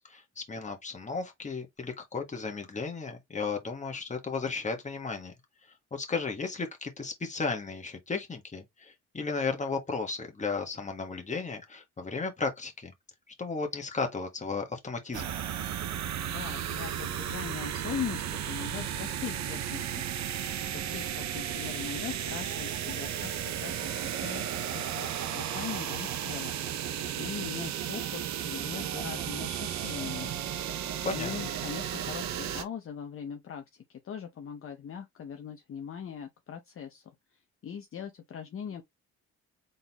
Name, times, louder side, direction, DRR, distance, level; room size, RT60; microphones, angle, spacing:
voice 1, 0.0-5.3 5.9-12.9 13.4-15.3 31.0-31.3, left 4 dB, 25° left, 1.4 m, -34 dB
sound 1, 15.1-32.6, right 10 dB, 65° right, 0.8 m, -34 dB
voice 2, 16.3-20.4 20.8-25.1 25.3-26.9 27.2-30.3 31.1-37.1 37.6-38.8, left 8 dB, 45° left, 0.8 m, -40 dB
3.9 x 3.9 x 2.9 m
cardioid pair, 90°, 30 cm